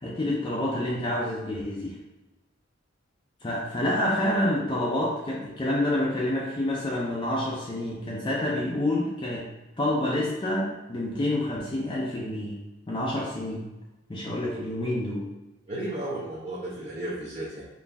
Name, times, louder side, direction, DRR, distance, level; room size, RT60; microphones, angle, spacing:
voice 1, 0.0-2.0 3.4-9.5 9.8-12.6 12.9-13.7 14.1-15.2, left 1 dB, 25° left, -5 dB, 0.5 m, -28 dB
voice 2, 15.7-17.7, right 1 dB, 30° right, -7 dB, 0.7 m, -34 dB
4.0 x 2.5 x 3.4 m, 1.0 s
head